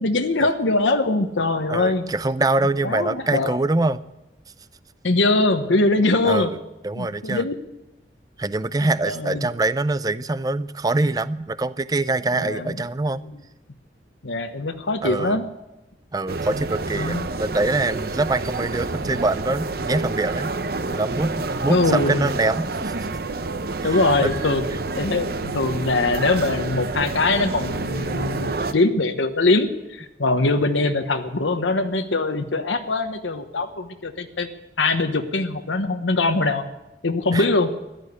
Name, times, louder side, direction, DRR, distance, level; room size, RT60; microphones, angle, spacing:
voice 1, 0.0-2.1 2.8-3.5 5.0-6.5 7.0-7.6 9.0-9.5 12.4-12.8 14.2-15.4 17.0-17.3 21.7-22.3 23.8-24.6 24.9-34.5 34.8-36.6 37.0-37.7, left 2 dB, 85° left, 6 dB, 1.1 m, -22 dB
voice 2, 1.7-4.0 6.2-6.6 6.8-7.5 8.4-13.2 15.0-15.4 16.1-20.5 20.9-22.9 23.8-24.3 37.3-37.5, right 2 dB, 20° right, 16 dB, 0.4 m, -24 dB
sound 1, 16.3-28.7, right 3 dB, 55° right, 0.8 m, -28 dB
14.5 x 12.0 x 8.1 m, 1.0 s
head